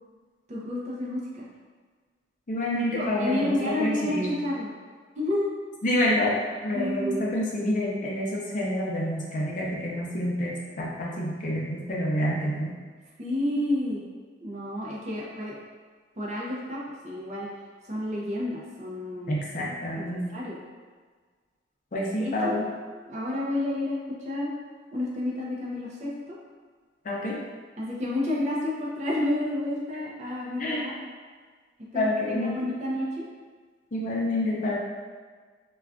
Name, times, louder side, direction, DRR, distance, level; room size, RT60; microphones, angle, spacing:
voice 1, 0.5-1.4 2.9-4.7 5.2-5.5 6.7-7.1 13.2-14.0 14.4-15.5 16.2-17.5 17.8-19.3 20.0-20.6 22.2-22.6 23.1-24.5 24.9-26.3 27.8-30.9 31.9-33.2, left 1 dB, 40° right, -4 dB, 0.5 m, -30 dB
voice 2, 2.5-4.3 5.8-6.4 6.6-12.7 19.3-20.2 21.9-22.7 27.0-27.4 30.6-30.9 31.9-32.6 33.9-34.7, left 1 dB, 45° left, -4 dB, 0.5 m, -28 dB
2.4 x 2.3 x 3.4 m, 1.5 s
head